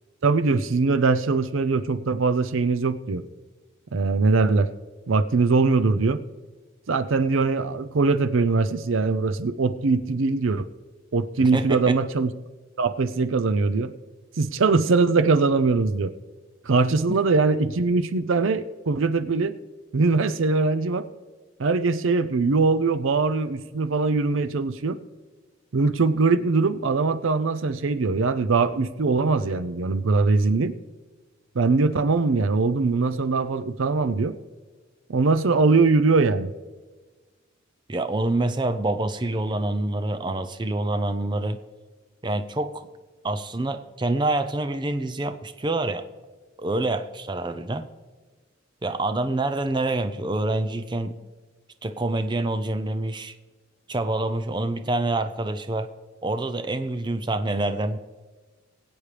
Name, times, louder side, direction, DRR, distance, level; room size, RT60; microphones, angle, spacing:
voice 1, 0.2-3.2 3.9-4.7 5.1-6.2 6.9-10.7 11.1-12.3 12.8-13.9 14.4-16.1 16.7-19.6 19.9-21.1 21.6-25.0 25.7-30.7 31.6-34.3 35.1-36.5, right 3 dB, 75° right, 12 dB, 0.5 m, -22 dB
voice 2, 11.4-12.0 37.9-41.6 42.2-42.9 43.2-46.1 46.6-47.9 48.8-51.2 51.8-53.4 53.9-55.9 56.2-58.0, right 2 dB, 20° right, 10 dB, 0.5 m, -26 dB
21.5 x 8.9 x 3.3 m, 1.3 s
head